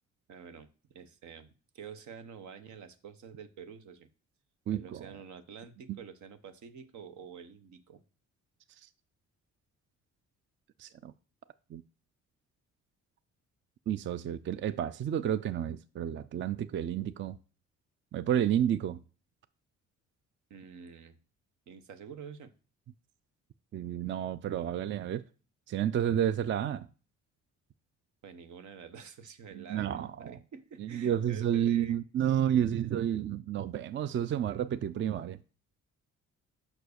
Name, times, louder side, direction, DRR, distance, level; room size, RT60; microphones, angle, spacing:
voice 1, 0.3-4.1 4.7-8.0 20.5-21.2 21.7-22.5 28.2-32.0, right 6 dB, 75° right, 0.9 m, -48 dB
voice 2, 4.7-5.1 5.9-6.0 10.8-11.1 11.7-11.8 13.9-17.4 18.1-19.0 23.7-25.2 25.7-26.9 29.5-30.4 30.8-35.4, right 10 dB, 40° right, 0.4 m, -30 dB
5.9 x 4.6 x 6.5 m
cardioid pair, 90°, 30 cm